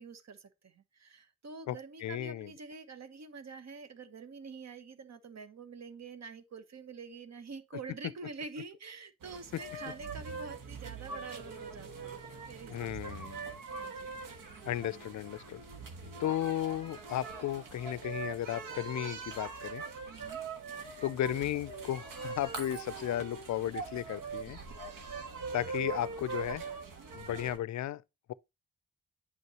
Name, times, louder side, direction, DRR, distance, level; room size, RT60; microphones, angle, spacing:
voice 1, 0.0-13.3 13.8-14.1 20.1-20.4, right 4 dB, 55° right, 1.1 m, -47 dB
voice 2, 2.0-2.5 12.7-13.5 14.7-15.6 16.2-19.8 21.0-24.6 25.5-26.6 27.1-28.0, left 12 dB, 60° left, 0.5 m, -34 dB
sound 1, 9.2-27.6, right 4 dB, 80° right, 1.4 m, -42 dB
8.1 x 5.3 x 2.9 m
cardioid pair, 60°, 33 cm